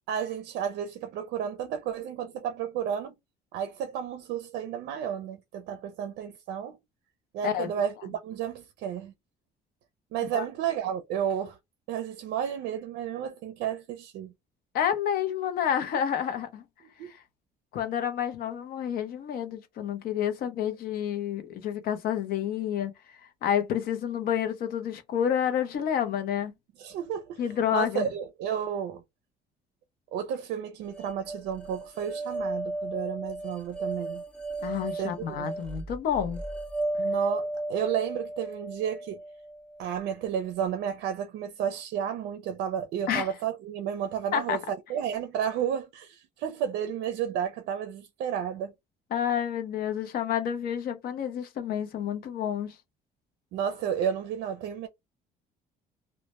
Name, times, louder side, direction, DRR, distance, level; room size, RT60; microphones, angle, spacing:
voice 1, 0.1-3.2 3.5-6.8 7.3-9.1 10.1-11.6 11.9-14.3 17.0-17.1 26.8-29.0 30.1-34.2 35.0-35.5 37.0-39.2 39.8-48.7 53.5-54.9, right 9 dB, 80° right, 0.4 m, -32 dB
voice 2, 14.7-16.6 17.0-17.2 17.7-22.9 23.4-26.5 27.4-28.1 34.6-36.4 43.1-43.3 44.3-44.6 49.1-52.8, left 9 dB, 65° left, 0.6 m, -29 dB
sound 1, 30.9-40.1, right 2 dB, 5° left, 0.4 m, -35 dB
2.1 x 2.1 x 2.8 m
cardioid pair, 110°, 17 cm